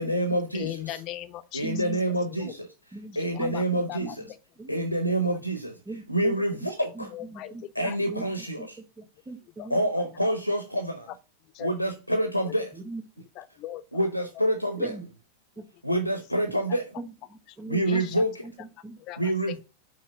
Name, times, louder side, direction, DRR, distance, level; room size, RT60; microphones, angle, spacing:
voice 1, 0.0-1.0 1.5-2.7 3.2-4.3 4.7-5.8 6.1-7.1 7.7-8.8 9.7-11.1 11.6-12.7 13.9-15.0 15.8-16.9 17.7-18.4 19.2-19.6, right 1 dB, 90° left, 0.9 m, -27 dB
voice 2, 0.5-1.8 2.3-2.6 3.1-4.2 5.3-5.4 6.8-7.5 7.8-8.0 9.6-9.7 11.1-11.2 11.5-11.7 12.4-12.5 13.4-13.8 17.8-18.2 19.0-19.6, left 14 dB, 40° left, 0.6 m, -39 dB
voice 3, 1.6-2.0 2.9-4.1 4.6-4.7 5.8-6.3 6.9-8.3 8.6-9.8 12.7-13.0 14.7-15.1 15.6-15.7 17.0-18.0 18.4-19.0, right 2 dB, 10° right, 1.4 m, -40 dB
5.8 x 4.7 x 6.0 m
figure-of-eight pair, 90°, 0 cm